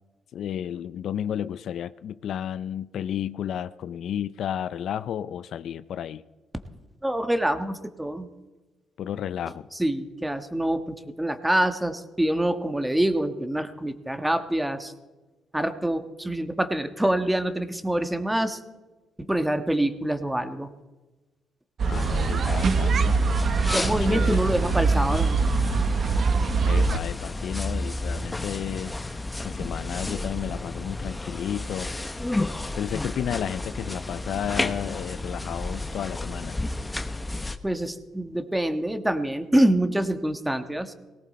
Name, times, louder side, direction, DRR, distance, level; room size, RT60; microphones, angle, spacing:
voice 1, 0.3-6.2 9.0-9.7 21.8-23.3 23.9-24.4 26.6-31.9 32.7-36.6, left 10 dB, 70° left, 15 dB, 0.4 m, -32 dB
voice 2, 7.0-8.3 9.8-14.9 15.5-18.6 19.2-20.7 23.7-25.3 37.6-40.9, right 1 dB, 10° right, 8 dB, 1.4 m, -25 dB
sound 1, 21.8-27.0, right 4 dB, 55° right, 0.7 m, -23 dB
sound 2, 21.9-37.6, left 2 dB, 15° left, 1.0 m, -32 dB
18.5 x 17.5 x 4.3 m, 1.2 s
cardioid pair, 80°, 0 cm